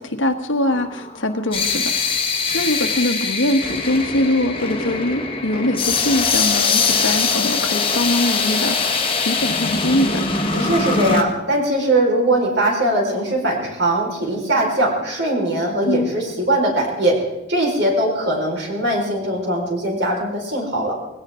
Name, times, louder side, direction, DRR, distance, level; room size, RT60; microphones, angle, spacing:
voice 1, 0.0-1.9 2.5-10.2 15.8-16.1, left 1 dB, 65° left, 6 dB, 1.4 m, -22 dB
sound 1, 0.7-11.2, left 4 dB, 25° left, 1.4 m, -22 dB
voice 2, 10.5-17.2 17.5-20.9, right 1 dB, 55° right, -1 dB, 4.8 m, -20 dB
20.0 x 17.0 x 3.8 m, 0.95 s
head